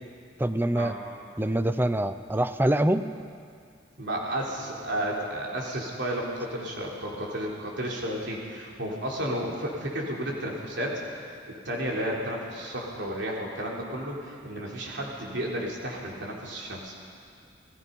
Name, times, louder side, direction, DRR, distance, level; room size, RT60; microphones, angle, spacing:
voice 1, 0.4-0.9 1.4-3.1, right 1 dB, 10° right, 10 dB, 0.7 m, -25 dB
voice 2, 4.0-11.0 11.6-16.9, right 1 dB, 65° right, -2 dB, 3.8 m, -32 dB
30.0 x 17.5 x 5.5 m, 2.3 s
head